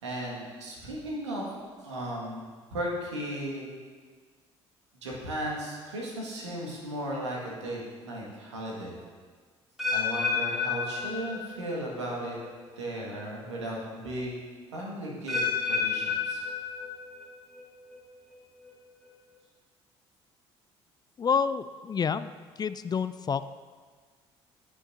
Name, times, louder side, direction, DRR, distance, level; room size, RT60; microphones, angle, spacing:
voice 1, 0.0-1.6 1.8-2.4 2.7-3.7 5.0-9.0 9.9-12.4 12.7-14.4 14.7-16.4, right 1 dB, 85° right, -3 dB, 1.7 m, -35 dB
sound 1, 9.8-11.8 12.1-12.5 13.2-13.3 15.3-17.2 17.5-18.0 18.6-18.7, left 5 dB, ahead, 2.5 m, -30 dB
voice 2, 21.2-22.3 22.6-23.5, left 6 dB, 30° left, 13 dB, 0.3 m, -28 dB
17.0 x 6.2 x 2.6 m, 1.5 s
hypercardioid pair, 50°, 15 cm